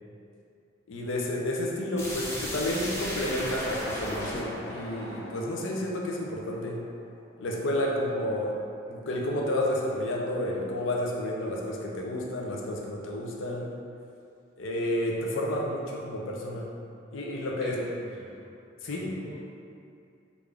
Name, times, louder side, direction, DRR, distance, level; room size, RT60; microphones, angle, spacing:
voice 1, 0.9-6.8 7.4-8.6 8.9-13.7 14.6-16.7 17.1-17.8 18.8-19.1, left 1 dB, 80° left, -2 dB, 0.5 m, -31 dB
sound 1, 2.0-6.7, equal, 15° left, 0.5 m, -36 dB
voice 2, 17.6-18.5 18.8-19.3, right 2 dB, 60° right, -5 dB, 0.5 m, -44 dB
3.5 x 2.5 x 3.3 m, 2.5 s
head